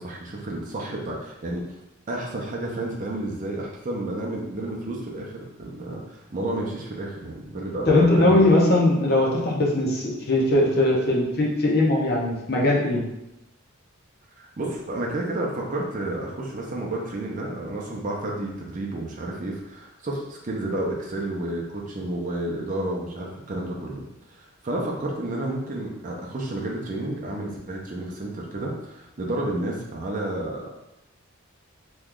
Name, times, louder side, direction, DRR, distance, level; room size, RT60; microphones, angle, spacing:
voice 1, 0.0-1.6 2.1-8.5 14.4-24.0 24.4-30.7, right 1 dB, 35° right, -2 dB, 0.5 m, -31 dB
voice 2, 7.9-13.0, left 2 dB, 45° left, -3 dB, 0.7 m, -20 dB
3.0 x 2.3 x 3.6 m, 0.89 s
head